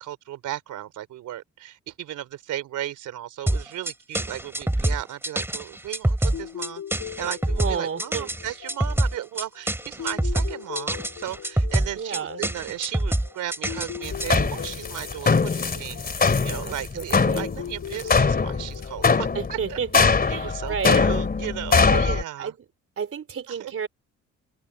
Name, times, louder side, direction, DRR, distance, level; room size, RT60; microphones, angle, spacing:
voice 1, 0.0-6.8 7.2-19.8 20.3-22.5 23.5-23.8, right 12 dB, 80° right, 3.5 m, -35 dB
sound 1, 3.5-14.5, right 1 dB, 10° right, 3.5 m, -26 dB
sound 2, 6.3-21.1, left 9 dB, 65° left, 5.7 m, -40 dB
voice 2, 7.6-8.3 12.0-12.4 16.7-17.5 19.3-21.0 21.9-22.0 22.4-22.6 23.0-23.9, right 7 dB, 45° right, 4.2 m, -31 dB
sound 3, 14.0-22.2, left 4 dB, 30° left, 3.0 m, -22 dB
cardioid pair, 90°, 30 cm